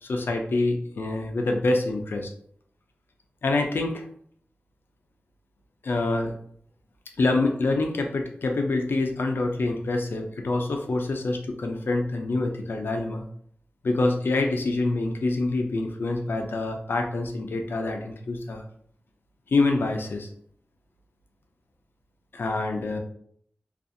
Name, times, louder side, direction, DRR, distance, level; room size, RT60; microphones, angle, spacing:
voice 1, 0.0-2.3 3.4-4.1 5.8-6.3 7.2-13.2 13.8-18.6 19.5-20.3 22.3-23.0, left 2 dB, 90° left, 3 dB, 0.4 m, -26 dB
2.6 x 2.3 x 2.5 m, 0.64 s
wide cardioid pair, 85°, 4 cm